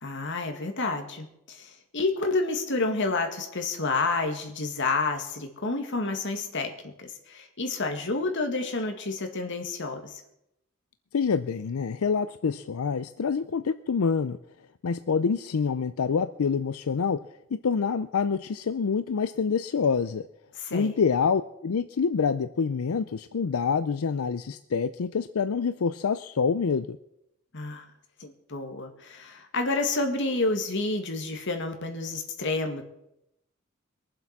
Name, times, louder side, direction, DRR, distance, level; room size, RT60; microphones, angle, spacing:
voice 1, 0.0-10.2 20.6-20.9 27.5-27.9 28.2-32.8, left 3 dB, 60° left, 4 dB, 2.0 m, -29 dB
voice 2, 11.1-14.4 14.8-17.2 17.5-20.3 20.7-27.0, left 5 dB, 90° left, 12 dB, 0.5 m, -26 dB
22.5 x 7.6 x 5.9 m, 0.82 s
head